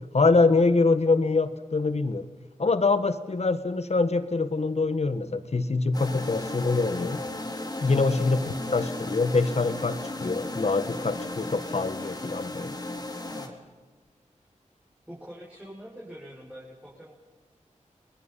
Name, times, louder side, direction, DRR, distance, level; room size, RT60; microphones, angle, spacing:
voice 1, 0.1-2.3 2.6-7.2 7.8-12.8, left 3 dB, 55° left, 12 dB, 1.7 m, -24 dB
sound 1, 5.9-13.5, left 2 dB, 30° left, 3.4 m, -35 dB
voice 2, 7.9-8.2 13.1-13.6 15.1-17.1, equal, 10° right, -6 dB, 6.5 m, -44 dB
30.0 x 21.0 x 5.8 m, 1.3 s
wide cardioid pair, 65°, 13 cm